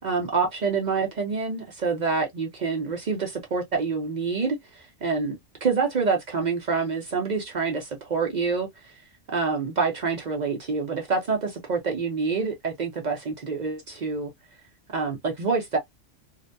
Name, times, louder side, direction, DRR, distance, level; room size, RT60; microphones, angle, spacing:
voice 1, 0.0-8.7 9.3-14.3 14.9-15.8, right 4 dB, 50° right, 0.6 m, -27 dB
2.5 x 2.1 x 2.5 m
omnidirectional pair, 1.3 m